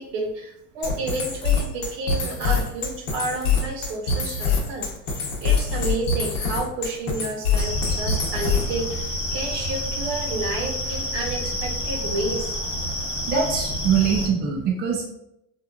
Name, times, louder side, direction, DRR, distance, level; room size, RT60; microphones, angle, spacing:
voice 1, 0.0-12.5, right 2 dB, 65° right, 2 dB, 0.8 m, -30 dB
sound 1, 0.8-8.8, left 5 dB, 60° left, 0.9 m, -24 dB
sound 2, 7.6-14.3, equal, 15° left, 0.8 m, -29 dB
voice 2, 13.3-15.1, right 7 dB, 25° right, -1 dB, 0.4 m, -23 dB
3.0 x 2.3 x 2.3 m, 0.81 s
supercardioid pair, 130°, 37 cm